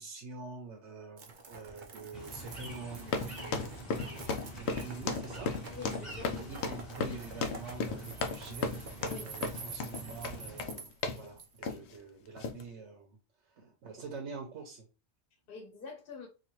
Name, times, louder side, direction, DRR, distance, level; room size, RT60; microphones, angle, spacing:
voice 1, 0.0-5.5 6.2-8.7 9.2-13.2 13.5-14.9, right 4 dB, 85° right, 1.1 m, -46 dB
sound 1, 1.2-11.7, right 4 dB, 50° right, 0.8 m, -47 dB
sound 2, 2.1-10.6, right 1 dB, ahead, 1.1 m, -46 dB
sound 3, 3.0-11.3 11.6-11.9 12.4-12.6, left 4 dB, 75° left, 0.9 m, -35 dB
voice 2, 5.7-6.6 9.0-9.3 15.5-16.3, left 4 dB, 55° left, 1.1 m, -46 dB
4.1 x 2.6 x 3.0 m
omnidirectional pair, 1.2 m